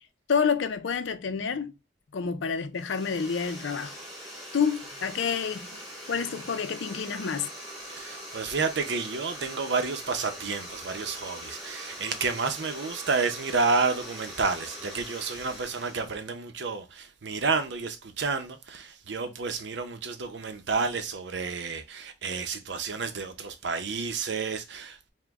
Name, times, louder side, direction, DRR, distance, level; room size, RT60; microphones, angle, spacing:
voice 1, 0.3-1.7 2.1-4.0 4.5-5.8 6.1-7.5, left 6 dB, 70° left, 0.5 m, -28 dB
sound 1, 2.7-16.2, equal, ahead, 1.7 m, -42 dB
voice 2, 7.9-25.1, right 4 dB, 65° right, 0.7 m, -30 dB
4.9 x 2.2 x 3.4 m
head